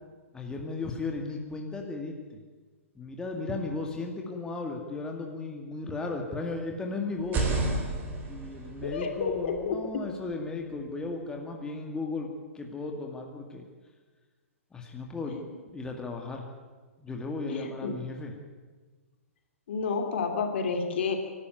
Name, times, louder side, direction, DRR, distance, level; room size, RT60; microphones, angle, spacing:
voice 1, 0.3-2.2 3.0-7.5 8.2-13.6 14.7-15.4 15.7-16.5 17.0-18.3, left 3 dB, 10° left, 1 dB, 2.2 m, -35 dB
sound 1, 7.2-11.0, right 3 dB, 25° right, 4.6 m, -33 dB
voice 2, 8.8-9.8 15.3-15.4 17.5-17.9 19.7-21.2, left 5 dB, 55° left, 4 dB, 3.3 m, -30 dB
25.5 x 12.5 x 9.5 m, 1.4 s
figure-of-eight pair, 115°, 8 cm